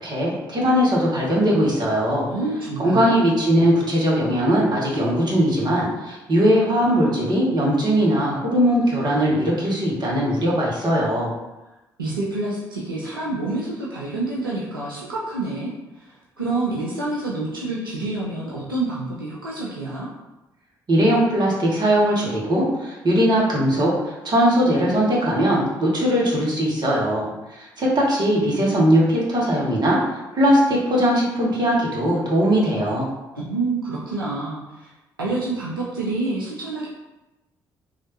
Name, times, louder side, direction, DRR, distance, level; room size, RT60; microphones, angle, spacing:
voice 1, 0.0-2.3 2.8-11.3 20.9-33.1, equal, 40° right, -4 dB, 1.1 m, -20 dB
voice 2, 2.3-3.2 12.0-15.7 15.9-20.1 33.3-34.9 35.2-36.9, right 2 dB, 90° right, -6 dB, 0.4 m, -27 dB
3.2 x 2.4 x 2.9 m, 1.0 s
figure-of-eight pair, 45°, 11 cm